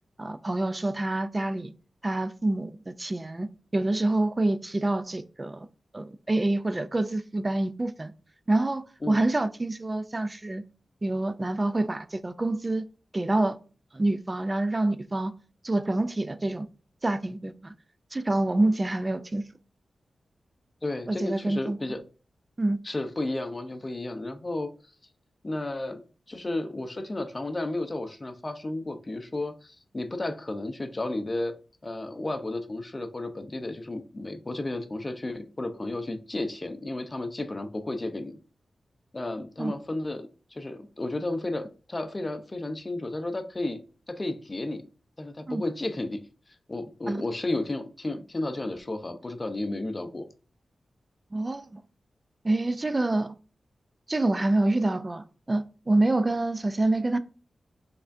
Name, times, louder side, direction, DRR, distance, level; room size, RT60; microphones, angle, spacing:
voice 1, 0.2-1.7 2.0-5.7 5.9-8.1 8.5-10.6 11.0-12.9 13.1-13.6 13.9-15.3 15.6-16.7 17.0-17.7 18.1-19.4 21.1-21.8 22.6-22.8 39.6-39.7 45.5-45.6 47.1-47.3 51.3-51.8 52.4-53.3 54.1-57.2, right 2 dB, 25° right, 0.4 m, -27 dB
voice 2, 20.8-22.0 22.8-24.7 25.4-26.0 26.3-31.5 31.8-38.4 39.1-43.8 44.1-44.8 45.2-46.2 46.7-50.3, left 2 dB, 25° left, 0.6 m, -33 dB
5.6 x 3.5 x 2.6 m
wide cardioid pair, 130°, 0 cm